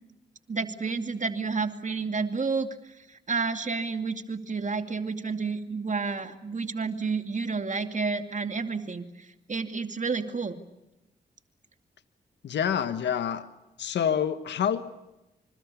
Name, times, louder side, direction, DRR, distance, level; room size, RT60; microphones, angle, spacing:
voice 1, 0.5-2.7 3.0-10.6, right 4 dB, 45° right, 7 dB, 2.5 m, -30 dB
voice 2, 12.4-13.5 13.8-14.8, left 8 dB, 80° left, 10 dB, 1.4 m, -27 dB
26.5 x 26.5 x 7.0 m, 0.98 s
cardioid pair, 55°, 18 cm